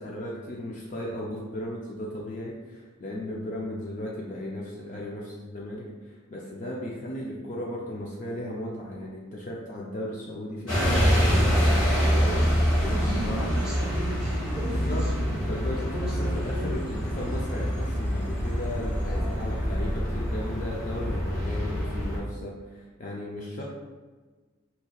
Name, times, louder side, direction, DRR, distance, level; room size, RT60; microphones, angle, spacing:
voice 1, 0.0-11.8 12.0-12.4 12.8-13.5 14.7-15.9 16.2-23.6, left 1 dB, 40° left, -3 dB, 0.4 m, -36 dB
sound 1, 10.7-22.2, equal, 90° left, 1.3 m, -26 dB
voice 2, 12.0-12.5 12.9-15.1 15.8-16.9 19.1-19.7, right 1 dB, 5° right, -8 dB, 1.0 m, -37 dB
4.2 x 2.8 x 2.3 m, 1.4 s
head